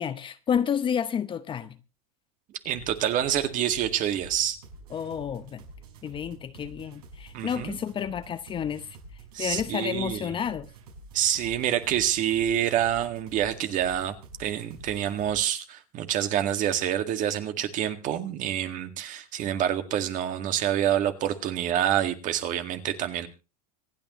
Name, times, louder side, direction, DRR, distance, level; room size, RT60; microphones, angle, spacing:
voice 1, 0.0-1.8 4.9-5.6 6.0-8.9 9.4-10.7, left 8 dB, 25° left, 0.8 m, -30 dB
sound 1, 2.6-15.4, right 2 dB, 85° right, 5.7 m, -48 dB
voice 2, 2.7-4.6 7.3-7.8 9.3-10.3 11.1-23.3, right 10 dB, 45° right, 2.0 m, -27 dB
26.0 x 9.0 x 3.1 m
supercardioid pair, 120°, 19 cm